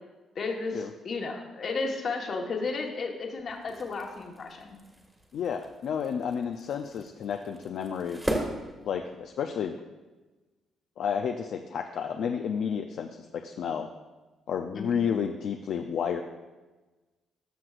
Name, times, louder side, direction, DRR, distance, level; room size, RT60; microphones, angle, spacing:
voice 1, 0.3-4.7 14.7-15.1, left 4 dB, 55° left, 2 dB, 1.3 m, -33 dB
sound 1, 3.5-9.5, right 1 dB, 10° right, 1.6 m, -38 dB
voice 2, 5.3-8.2 8.8-9.8 11.0-13.1 13.4-13.9 14.5-16.2, left 7 dB, 70° left, 4 dB, 0.4 m, -31 dB
13.5 x 6.1 x 2.5 m, 1.2 s
cardioid pair, 90°, 0 cm